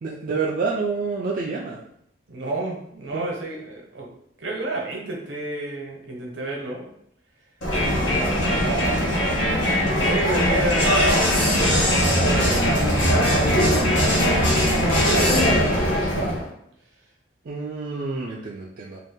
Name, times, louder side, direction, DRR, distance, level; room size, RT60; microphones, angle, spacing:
voice 1, 0.0-1.8 3.1-3.3 17.5-19.0, right 4 dB, 50° right, -3 dB, 0.4 m, -28 dB
voice 2, 2.3-4.1 4.4-6.9 7.9-9.3 9.9-11.0 11.4-16.3, right 2 dB, 70° right, -1 dB, 0.9 m, -31 dB
Crowd, 7.6-16.5, equal, 85° left, 1.1 m, -20 dB
2.6 x 2.3 x 3.5 m, 0.72 s
head